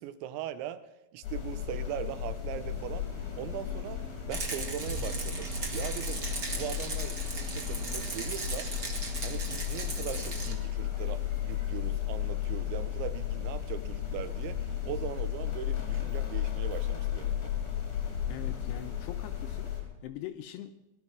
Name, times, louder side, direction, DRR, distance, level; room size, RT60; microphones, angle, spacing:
voice 1, 0.0-3.1 3.3-8.7 9.2-17.5, right 10 dB, 80° right, 13 dB, 3.1 m, -40 dB
sound 1, 1.2-19.8, left 11 dB, 55° left, 4.7 m, -34 dB
sound 2, 2.6-19.9, left 1 dB, 40° right, 5.2 m, -47 dB
Rattle, 4.3-10.5, right 3 dB, 55° right, 1.0 m, -37 dB
voice 2, 18.3-19.7 20.0-20.8, left 12 dB, 80° left, 8 dB, 2.5 m, -42 dB
19.0 x 12.0 x 6.1 m, 0.98 s
omnidirectional pair, 5.3 m